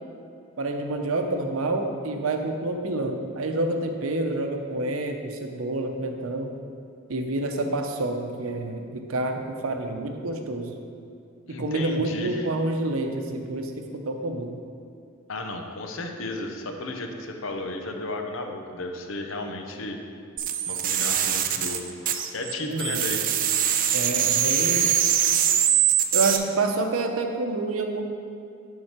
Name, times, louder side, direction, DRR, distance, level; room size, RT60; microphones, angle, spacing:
voice 1, 0.6-6.5 7.1-10.7 11.6-14.6 22.6-23.0 23.9-24.9 26.1-28.0, right 2 dB, 85° right, 4 dB, 0.7 m, -28 dB
voice 2, 11.5-12.5 15.3-20.0 20.6-21.8 22.3-23.2, left 2 dB, 70° left, 4 dB, 0.7 m, -34 dB
sound 1, 20.4-22.5 22.8-26.4, right 9 dB, 40° right, 0.4 m, -23 dB
11.0 x 3.8 x 4.4 m, 2.5 s
head